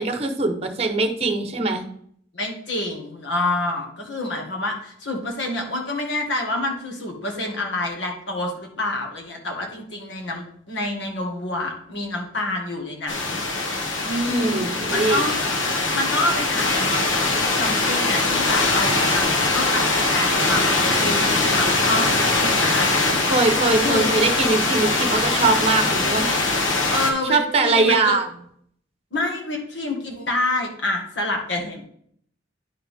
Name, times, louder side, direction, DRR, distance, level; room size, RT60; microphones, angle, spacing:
voice 1, 0.0-1.8 14.3-15.2 23.3-26.4 27.3-28.3, right 3 dB, 35° right, 6 dB, 0.9 m, -21 dB
voice 2, 2.3-13.4 14.0-15.6 15.9-19.8 20.1-22.9 23.8-24.1 26.9-28.1 29.1-31.9, left 2 dB, 70° left, 2 dB, 1.8 m, -27 dB
sound 1, 13.1-27.1, left 2 dB, 85° left, 1.3 m, -22 dB
10.0 x 4.7 x 3.6 m, 0.65 s
head